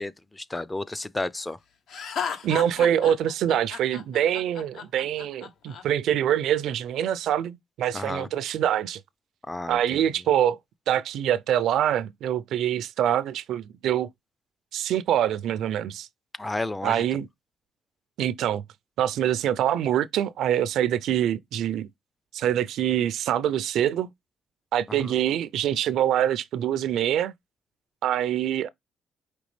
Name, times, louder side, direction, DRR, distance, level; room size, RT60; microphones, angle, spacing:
voice 1, 0.0-1.6 7.9-8.3 9.5-10.1 16.4-17.0 24.9-25.1, left 2 dB, 15° left, 0.4 m, -32 dB
Laughter, 1.9-5.8, left 6 dB, 75° left, 1.0 m, -34 dB
voice 2, 2.4-9.0 9.7-10.6 10.9-14.1 14.7-16.1 16.8-17.3 18.2-18.6 19.0-21.9 22.3-24.1 24.7-27.3 28.0-28.7, right 10 dB, 80° right, 0.4 m, -25 dB
5.1 x 3.3 x 3.2 m
cardioid pair, 90°, 0 cm